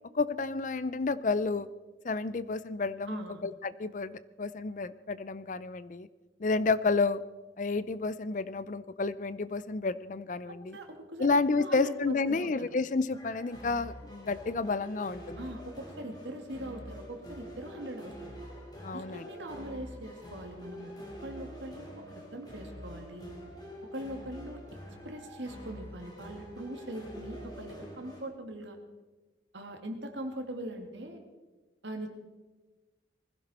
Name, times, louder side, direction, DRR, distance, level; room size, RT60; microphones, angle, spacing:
voice 1, 0.1-1.7 2.0-6.1 6.4-7.2 7.6-10.8 11.2-15.5 18.8-19.3, left 3 dB, 45° left, 16 dB, 0.5 m, -30 dB
voice 2, 3.1-3.4 10.5-12.7 15.4-18.3 18.9-20.9 21.2-23.3 23.9-24.6 25.0-28.8 29.5-31.2 31.8-32.1, right 1 dB, 75° right, 4 dB, 2.3 m, -41 dB
sound 1, 13.1-28.2, equal, 20° left, 3.9 m, -46 dB
20.5 x 15.5 x 4.3 m, 1.2 s
head